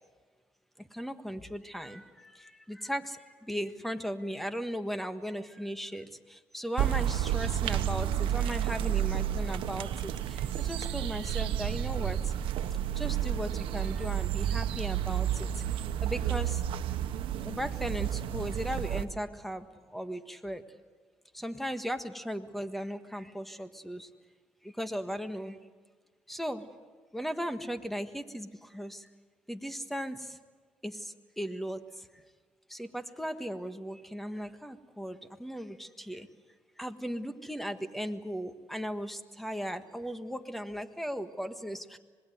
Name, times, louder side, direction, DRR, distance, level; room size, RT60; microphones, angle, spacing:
voice 1, 0.8-12.3 12.9-15.5 16.0-16.6 17.4-20.6 21.3-24.1 24.6-25.6 26.3-26.7 27.1-29.1 29.5-30.4 30.8-32.1 32.7-36.3 36.8-42.0, equal, ahead, 9 dB, 1.5 m, -37 dB
sound 1, 6.8-19.0, right 11 dB, 85° right, 1.0 m, -31 dB
26.0 x 20.5 x 7.9 m, 1.5 s
cardioid pair, 95°, 9 cm